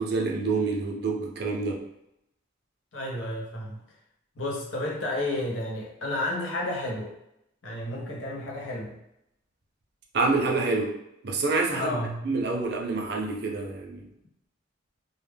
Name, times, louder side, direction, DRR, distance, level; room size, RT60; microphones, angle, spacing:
voice 1, 0.0-1.8 10.1-11.0 11.2-14.1, right 3 dB, 55° right, 0 dB, 0.5 m, -27 dB
voice 2, 2.9-3.8 4.4-7.1 7.6-9.0 11.7-12.2, left 1 dB, 80° left, -2 dB, 0.7 m, -31 dB
2.1 x 2.1 x 3.3 m, 0.81 s
head